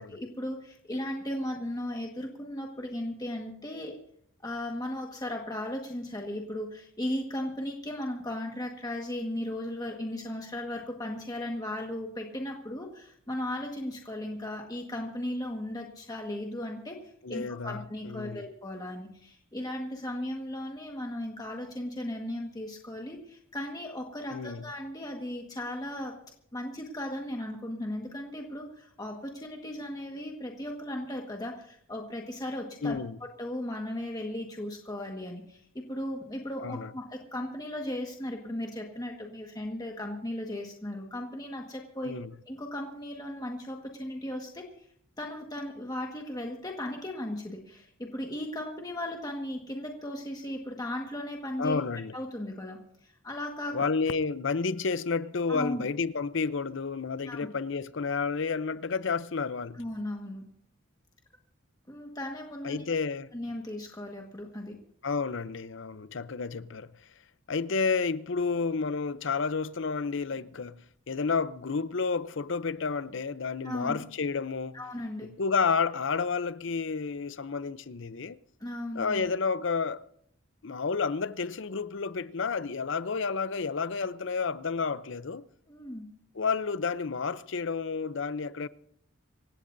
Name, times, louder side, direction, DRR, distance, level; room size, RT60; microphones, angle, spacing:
voice 1, 0.0-3.9 4.4-17.0 17.3-26.2 26.5-42.2 42.5-44.9 45.2-51.8 52.1-53.9 55.5-55.8 57.3-57.5 59.8-60.4 61.9-62.9 63.3-64.8 73.6-74.0 74.7-75.3 78.6-79.2 85.7-86.1, left 1 dB, 20° left, 1.6 m, -36 dB
voice 2, 17.2-18.4 24.3-24.6 32.8-33.2 36.6-36.9 42.0-42.3 51.6-52.1 53.7-59.8 62.6-63.3 65.0-66.9 67.5-74.8 75.4-78.4 78.9-80.1 80.6-85.4 86.3-88.7, left 5 dB, 60° left, 0.6 m, -30 dB
27.0 x 16.0 x 2.7 m
head